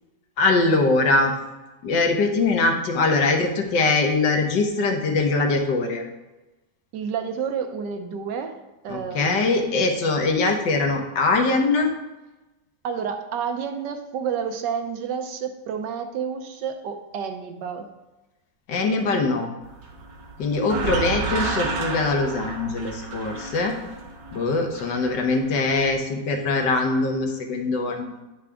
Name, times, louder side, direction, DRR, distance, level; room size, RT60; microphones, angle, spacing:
voice 1, 0.4-1.3 1.8-6.0 8.9-11.9 18.7-19.5 20.4-23.7 24.3-28.1, left 3 dB, 80° left, 3 dB, 1.7 m, -22 dB
voice 2, 6.9-9.8 12.8-17.9, right 7 dB, 80° right, 5 dB, 1.4 m, -30 dB
sound 1, 19.6-25.9, right 3 dB, 55° right, 1.3 m, -31 dB
9.8 x 4.9 x 3.5 m, 1.1 s
omnidirectional pair, 1.9 m